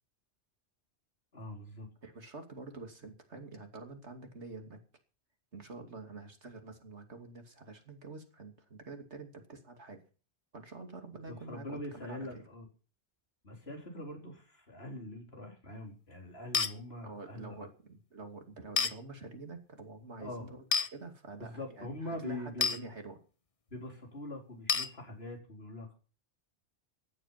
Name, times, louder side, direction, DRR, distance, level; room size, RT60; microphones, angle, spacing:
voice 1, 1.3-1.9 11.3-12.6 13.4-17.6 20.2-20.6 21.4-22.9 23.7-25.9, left 1 dB, 65° left, 2 dB, 4.8 m, -43 dB
voice 2, 2.0-4.8 5.5-10.0 10.5-11.7 11.9-12.5 17.0-20.5 20.9-23.2, right 3 dB, 85° right, 5 dB, 2.9 m, -47 dB
sound 1, 16.5-16.7 18.8-18.9 20.7-20.9 22.6-22.8 24.7-24.9, left 5 dB, 35° left, 0.9 m, -28 dB
15.0 x 11.0 x 5.9 m, 0.37 s
omnidirectional pair, 1.1 m